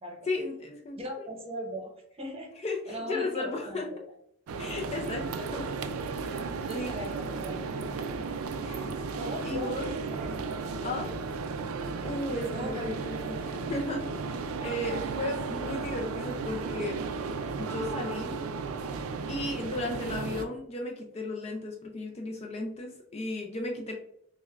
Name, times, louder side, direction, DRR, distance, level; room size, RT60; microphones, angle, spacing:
voice 1, 0.3-1.3 2.6-3.9 4.6-5.7 6.2-6.5 6.7-7.1 8.6-8.8 9.4-9.9 10.8-11.1 12.0-17.0 17.6-18.4 19.3-23.9, left 2 dB, 30° left, 1 dB, 0.4 m, -35 dB
voice 2, 0.9-2.5 2.9-4.0 5.0-5.5 6.7-7.6 9.0-11.0 12.5-12.9 13.3-13.6, equal, 25° right, 1 dB, 0.8 m, -40 dB
sound 1, 4.5-20.5, right 4 dB, 80° right, 0.4 m, -34 dB
6.0 x 2.2 x 2.4 m, 0.72 s
head